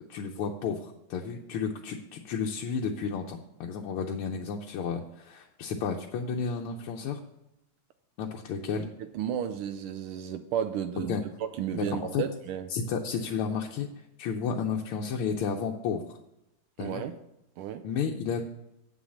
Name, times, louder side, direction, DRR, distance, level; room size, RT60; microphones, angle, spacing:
voice 1, 0.1-7.2 8.2-8.9 11.1-11.2 11.7-12.2 12.7-13.9 14.2-16.0 16.8-17.0 17.8-18.4, left 6 dB, 80° left, 1 dB, 1.6 m, -32 dB
voice 2, 9.1-11.2 11.6-12.7 16.8-17.1 17.6-17.8, right 9 dB, 80° right, 9 dB, 1.5 m, -32 dB
8.0 x 6.3 x 7.0 m, 0.86 s
omnidirectional pair, 2.4 m